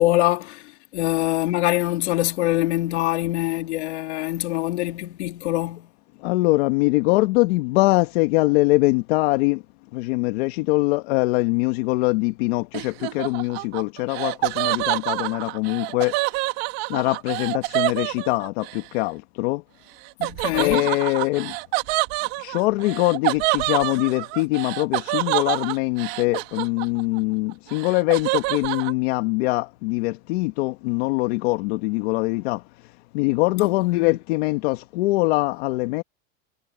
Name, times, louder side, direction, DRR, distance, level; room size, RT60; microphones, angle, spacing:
voice 1, 0.0-5.9 20.2-20.9 33.6-34.2, left 17 dB, 85° left, 2.5 m, -24 dB
voice 2, 6.2-9.6 9.9-16.1 16.9-19.6 20.5-21.5 22.4-32.6 33.1-36.0, left 22 dB, 70° left, 1.4 m, -23 dB
Laughter, 12.7-18.8 20.2-27.2 27.5-28.9, right 22 dB, 60° right, 1.9 m, -27 dB
supercardioid pair, 145°, 33 cm